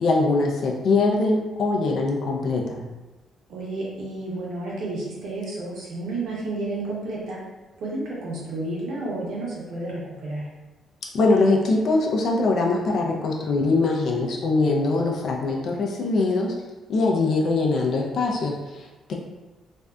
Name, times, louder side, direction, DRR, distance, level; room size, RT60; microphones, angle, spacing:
voice 1, 0.0-2.8 11.1-16.5 16.9-19.1, left 3 dB, 65° left, 0 dB, 0.4 m, -22 dB
voice 2, 3.5-7.4 7.8-10.4, right 2 dB, 75° right, -5 dB, 0.8 m, -31 dB
2.6 x 2.2 x 2.3 m, 1.1 s
cardioid pair, 90°, 0 cm